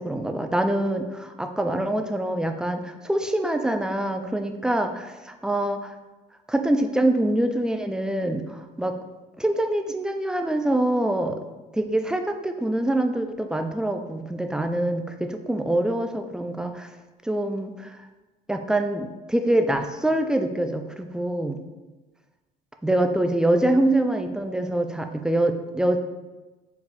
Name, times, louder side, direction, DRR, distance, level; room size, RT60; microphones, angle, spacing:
voice 1, 0.0-5.9 6.5-9.0 9.4-11.4 11.7-16.9 17.2-18.0 18.5-21.6 22.8-26.0, right 1 dB, 5° right, 6 dB, 0.3 m, -25 dB
4.3 x 2.3 x 4.1 m, 1.2 s
cardioid pair, 110°, 17 cm